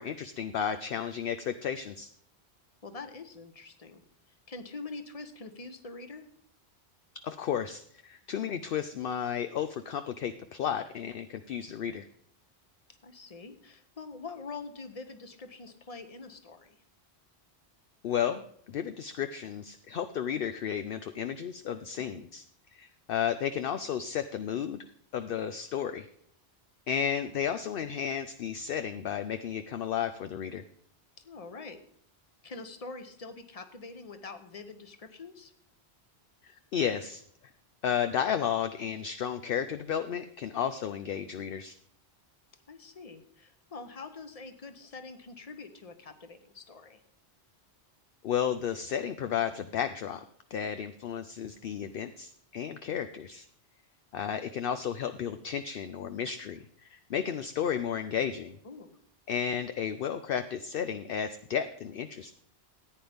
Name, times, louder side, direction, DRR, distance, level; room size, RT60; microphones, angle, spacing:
voice 1, 0.0-2.1 7.2-12.1 18.0-22.4 22.7-24.8 25.1-26.1 26.9-30.6 36.4-37.2 37.8-41.7 48.2-50.2 50.5-53.5 54.1-58.6 59.3-62.3, left 8 dB, 65° left, 9 dB, 0.7 m, -33 dB
voice 2, 2.8-4.0 4.5-6.2 13.0-16.8 22.1-22.2 31.2-31.8 32.4-35.5 42.7-47.0 50.6-50.7 58.6-59.0, left 3 dB, 35° left, 9 dB, 1.0 m, -45 dB
14.5 x 9.4 x 3.5 m, 0.65 s
omnidirectional pair, 1.1 m